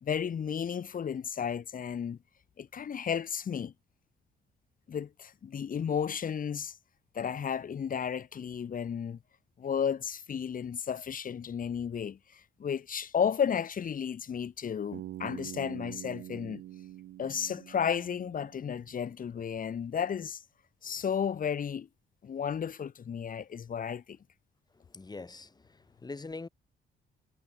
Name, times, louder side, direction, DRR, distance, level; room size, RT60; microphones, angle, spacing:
voice 1, 0.0-2.2 2.6-3.7 4.9-6.8 7.1-9.2 9.6-16.6 17.2-20.4 20.8-21.9 22.2-24.2, left 7 dB, 45° left, 1.2 m, -33 dB
Bass guitar, 14.9-18.9, right 14 dB, 85° right, 4.4 m, -45 dB
voice 2, 24.7-26.5, left 3 dB, 20° left, 1.4 m, -44 dB
cardioid pair, 90°, 20 cm